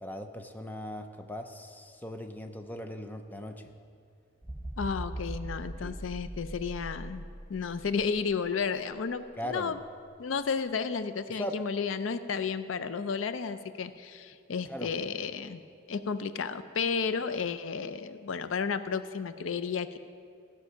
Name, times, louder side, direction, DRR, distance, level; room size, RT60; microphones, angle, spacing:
voice 1, 0.0-3.7 5.8-6.0 9.4-9.8 11.3-11.6 14.7-14.9, left 1 dB, 10° left, 5 dB, 0.6 m, -39 dB
sound 1, 4.4-8.4 9.0-9.1, right 1 dB, 10° right, 1.3 m, -40 dB
voice 2, 4.8-7.2 7.5-9.8 10.2-15.6 15.9-20.0, left 5 dB, 90° left, 12 dB, 0.5 m, -32 dB
16.0 x 6.1 x 5.6 m, 2.3 s
head